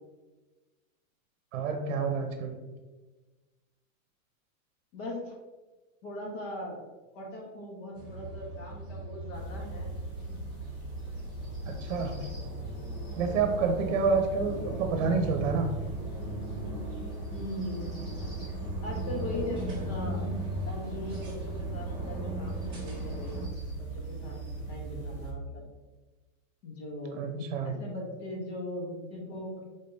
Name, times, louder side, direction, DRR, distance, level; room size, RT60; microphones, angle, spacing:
voice 1, 1.5-2.5 11.6-12.1 13.1-15.7 27.2-27.7, right 5 dB, 60° right, 5 dB, 0.8 m, -28 dB
voice 2, 4.9-5.3 6.0-6.8 7.1-9.9 10.3-10.4 13.6-14.0 17.3-18.0 18.8-19.6 19.9-20.2 20.7-24.4 24.7-25.6 26.6-29.6, left 1 dB, 45° left, -2 dB, 1.3 m, -39 dB
sound 1, 7.9-23.5, right 1 dB, 10° right, 0.7 m, -39 dB
sound 2, 9.3-25.3, right 2 dB, 10° left, 1.0 m, -39 dB
5.2 x 3.7 x 2.7 m, 1.2 s
supercardioid pair, 170°, 42 cm